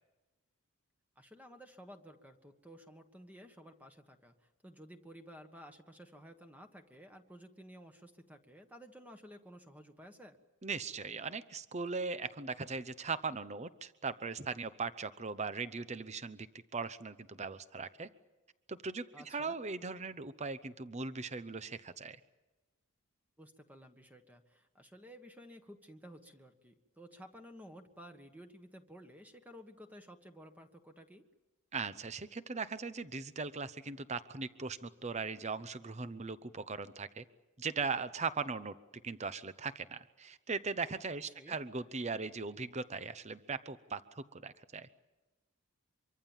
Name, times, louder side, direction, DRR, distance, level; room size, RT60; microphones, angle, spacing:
voice 1, 1.1-10.4 19.1-19.6 23.4-31.2 41.2-41.6, equal, 5° right, 5 dB, 1.4 m, -54 dB
voice 2, 10.6-16.5 16.7-18.1 18.7-22.2 31.7-37.2 37.6-44.9, right 4 dB, 30° right, 13 dB, 0.8 m, -39 dB
25.5 x 24.5 x 7.3 m, 1.1 s
head